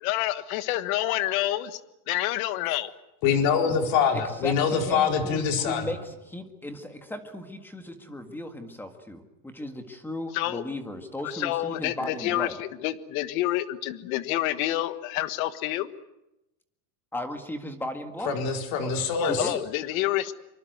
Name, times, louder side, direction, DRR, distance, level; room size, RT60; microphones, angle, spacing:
voice 1, 0.0-1.8 2.1-2.9 10.3-10.6 11.2-15.9 19.1-20.3, left 15 dB, 80° left, 13 dB, 1.6 m, -28 dB
voice 2, 3.2-5.9 18.3-19.5, left 6 dB, 55° left, 4 dB, 4.5 m, -24 dB
voice 3, 4.1-12.6 17.1-18.4 18.8-18.9 19.2-19.6, left 1 dB, 5° left, 7 dB, 1.8 m, -36 dB
25.5 x 25.0 x 8.0 m, 0.92 s
cardioid pair, 180°, 42 cm